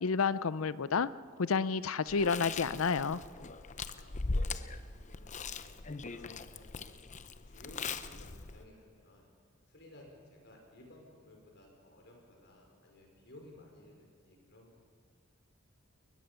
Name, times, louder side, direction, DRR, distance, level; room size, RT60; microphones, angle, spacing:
voice 1, 0.0-1.1 1.4-3.2, left 5 dB, 80° left, 17 dB, 0.6 m, -30 dB
Chewing mastication, 2.1-8.6, left 3 dB, 35° left, 0.7 m, -40 dB
voice 2, 3.8-4.8 5.0-7.0 7.4-9.3 9.7-14.8, left 1 dB, 55° left, 1 dB, 5.1 m, -57 dB
21.5 x 20.0 x 6.9 m, 2.1 s
head